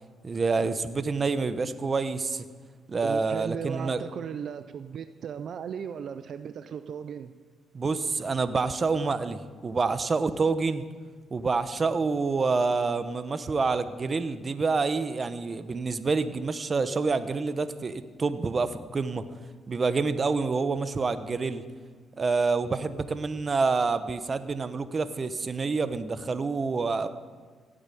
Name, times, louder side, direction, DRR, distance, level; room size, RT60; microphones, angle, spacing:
voice 1, 0.2-2.4 2.9-4.0 7.7-10.8 11.3-19.2 19.7-21.6 22.2-27.1, right 4 dB, 35° right, 12 dB, 0.9 m, -27 dB
voice 2, 3.0-7.3, right 7 dB, 60° right, 10 dB, 0.6 m, -36 dB
16.5 x 8.9 x 8.5 m, 1.5 s
cardioid pair, 90°, 0 cm